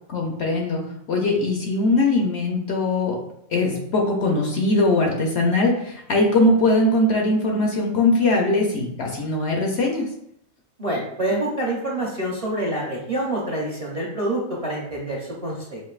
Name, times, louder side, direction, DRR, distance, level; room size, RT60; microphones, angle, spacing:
voice 1, 0.1-0.8 1.1-3.2 3.5-10.1, left 2 dB, 60° left, 0 dB, 0.8 m, -21 dB
voice 2, 10.8-15.8, right 1 dB, 35° right, -4 dB, 0.6 m, -26 dB
5.2 x 2.5 x 2.4 m, 0.73 s
omnidirectional pair, 1.4 m